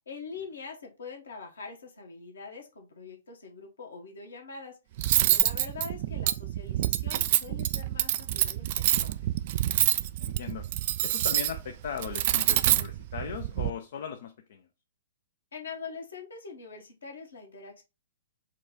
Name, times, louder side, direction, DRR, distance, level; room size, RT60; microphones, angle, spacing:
voice 1, 0.1-4.8 5.2-9.3 15.5-17.8, left 5 dB, 75° left, 1.3 m, -43 dB
Cutlery silverware, 5.0-13.7, right 14 dB, 45° right, 0.3 m, -27 dB
voice 2, 10.2-10.7 11.0-14.7, left 8 dB, 60° left, 0.5 m, -38 dB
4.6 x 2.4 x 3.8 m
figure-of-eight pair, 115°, 0 cm